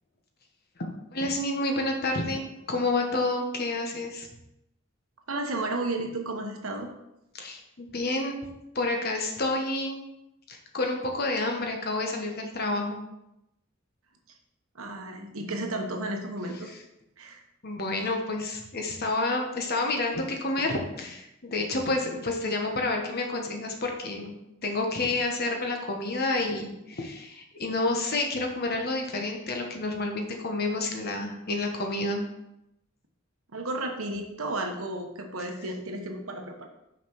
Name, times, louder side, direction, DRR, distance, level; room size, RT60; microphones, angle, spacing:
voice 1, 0.8-4.3 7.3-8.4 8.7-10.0 10.5-13.0 17.6-24.3 24.6-32.2, left 2 dB, 50° left, 2 dB, 1.2 m, -29 dB
voice 2, 5.3-6.9 14.7-16.7 17.2-17.4 33.5-36.7, right 2 dB, 85° right, 3 dB, 1.2 m, -33 dB
6.1 x 5.4 x 4.7 m, 0.86 s
head